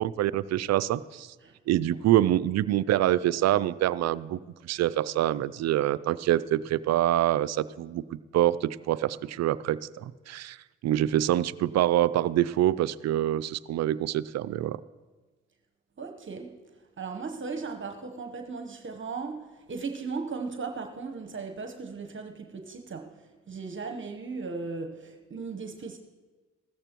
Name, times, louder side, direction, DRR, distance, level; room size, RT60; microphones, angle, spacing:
voice 1, 0.0-1.3 1.7-10.6 10.8-14.8, right 13 dB, 60° right, 0.4 m, -26 dB
voice 2, 16.0-16.6 17.0-23.2 23.5-26.0, right 4 dB, 40° right, 1.0 m, -37 dB
15.5 x 13.5 x 3.0 m
supercardioid pair, 50°, 31 cm